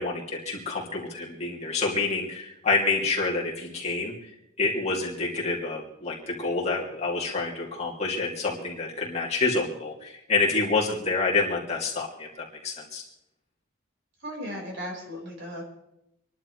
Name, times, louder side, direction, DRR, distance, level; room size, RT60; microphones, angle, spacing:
voice 1, 0.0-4.3 4.6-13.0, left 3 dB, 30° left, -3 dB, 2.7 m, -28 dB
voice 2, 14.2-15.6, equal, 55° right, -1 dB, 4.9 m, -36 dB
26.5 x 11.5 x 3.3 m, 0.84 s
head